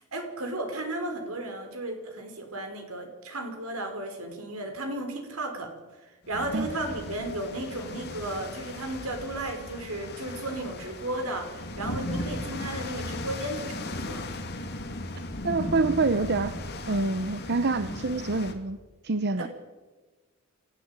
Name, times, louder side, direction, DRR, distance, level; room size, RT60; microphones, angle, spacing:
voice 1, 0.1-5.7 6.3-14.3 19.4-19.5, right 1 dB, 70° right, 5 dB, 5.0 m, -34 dB
sound 1, 6.3-18.5, left 1 dB, 50° left, 3.0 m, -37 dB
voice 2, 15.4-16.5 16.9-18.8 19.0-19.5, right 3 dB, 50° right, 12 dB, 0.9 m, -26 dB
28.0 x 14.0 x 9.0 m, 1.3 s
head